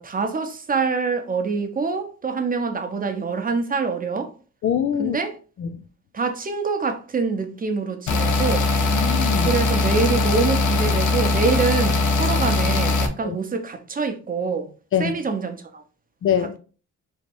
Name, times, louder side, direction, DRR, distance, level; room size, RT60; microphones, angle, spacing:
voice 1, 0.0-4.3 5.0-5.4 6.1-8.7 9.5-14.7 15.0-15.8, right 5 dB, 30° right, 0.8 m, -25 dB
voice 2, 4.6-5.2 5.6-5.8 8.9-9.5 13.2-13.4 14.9-15.1 16.2-16.6, left 8 dB, 45° left, 0.4 m, -23 dB
sound 1, 8.1-13.1, left 3 dB, 85° left, 0.8 m, -20 dB
3.1 x 2.9 x 4.4 m
cardioid pair, 90°, 30 cm